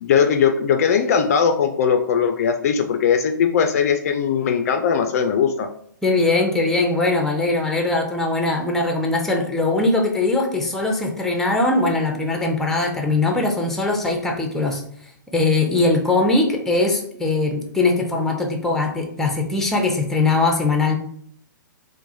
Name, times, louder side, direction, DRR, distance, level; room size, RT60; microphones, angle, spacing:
voice 1, 0.0-5.7, left 7 dB, 50° left, 7 dB, 0.3 m, -19 dB
voice 2, 6.0-14.8 15.3-21.0, left 3 dB, 5° left, 3 dB, 0.6 m, -21 dB
4.5 x 2.1 x 2.6 m, 0.63 s
figure-of-eight pair, 120°, 11 cm